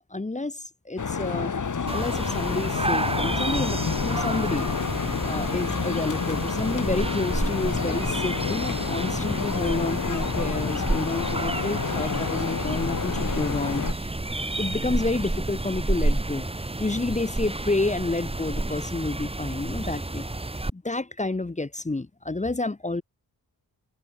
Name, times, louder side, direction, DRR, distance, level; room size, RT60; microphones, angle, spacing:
voice 1, 0.0-1.5 1.9-4.7 5.2-16.5 16.8-20.2 20.7-23.0, left 2 dB, 20° left, 1.3 m, -30 dB
sound 1, 1.0-13.9, left 6 dB, 55° left, 2.8 m, -29 dB
sound 2, 1.9-20.7, right 2 dB, 15° right, 2.5 m, -30 dB
wide cardioid pair, 105°, 37 cm